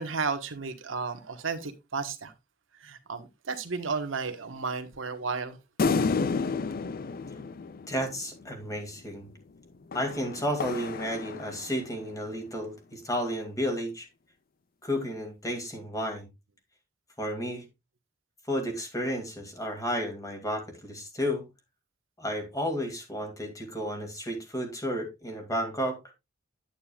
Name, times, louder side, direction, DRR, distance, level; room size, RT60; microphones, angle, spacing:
voice 1, 0.0-2.3 2.7-5.6, right 4 dB, 85° right, 1.3 m, -33 dB
sound 1, 5.8-8.5 9.9-12.0, left 4 dB, 50° left, 0.5 m, -31 dB
voice 2, 7.9-9.3 9.9-14.1 14.8-16.3 17.2-17.6 18.5-21.4 22.2-26.0, equal, 15° left, 2.4 m, -32 dB
9.4 x 8.8 x 2.4 m
head